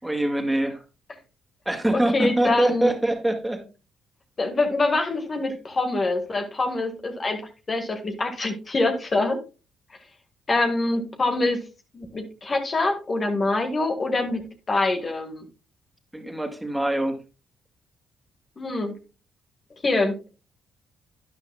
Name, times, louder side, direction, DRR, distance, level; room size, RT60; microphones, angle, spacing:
voice 1, 0.0-0.8 1.7-3.6 16.1-17.2, right 1 dB, 10° right, 4 dB, 2.2 m, -24 dB
voice 2, 2.1-2.9 4.4-7.4 7.7-9.4 10.5-11.6 11.9-15.5 18.6-19.0 19.8-20.1, left 2 dB, 40° left, 5 dB, 1.8 m, -25 dB
12.0 x 9.5 x 2.3 m, 0.30 s
supercardioid pair, 55°, 0 cm